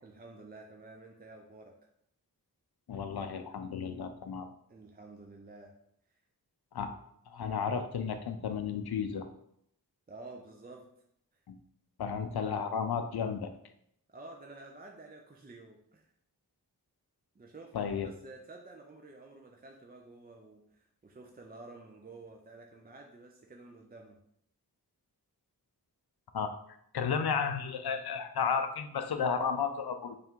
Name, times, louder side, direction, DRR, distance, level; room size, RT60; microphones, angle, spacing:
voice 1, 0.0-1.7 4.7-5.7 10.1-10.9 11.3-11.4 14.1-16.0 17.3-24.2, right 2 dB, 25° right, 1 dB, 0.5 m, -51 dB
voice 2, 2.9-4.5 6.7-7.0 7.3-9.3 11.5-11.6 12.0-13.5 17.7-18.1 26.3-26.6 26.9-30.2, left 6 dB, 75° left, 8 dB, 0.5 m, -33 dB
3.3 x 2.5 x 4.4 m, 0.73 s
wide cardioid pair, 45°, 39 cm